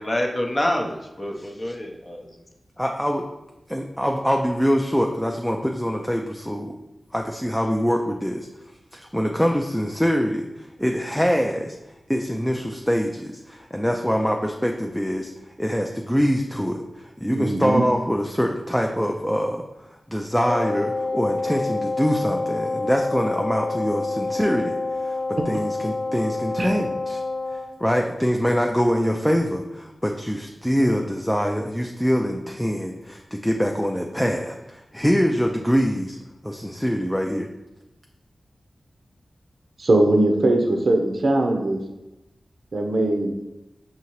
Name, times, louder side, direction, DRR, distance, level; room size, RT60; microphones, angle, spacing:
voice 1, 0.0-2.3, left 1 dB, 30° left, 1 dB, 0.7 m, -27 dB
voice 2, 2.8-3.3 3.7-6.8 7.1-8.5 8.9-11.7 12.1-15.3 15.6-19.6 20.1-24.8 25.0-27.2 27.8-36.2 36.4-37.5, equal, 5° left, 2 dB, 0.3 m, -24 dB
voice 3, 17.2-17.8 26.6-26.7 39.8-41.8 42.7-43.4, right 2 dB, 65° right, 2 dB, 0.5 m, -20 dB
Wind instrument woodwind instrument, 20.4-27.7, left 3 dB, 70° left, 0.6 m, -28 dB
5.2 x 2.8 x 3.0 m, 0.96 s
wide cardioid pair, 65°, 0 cm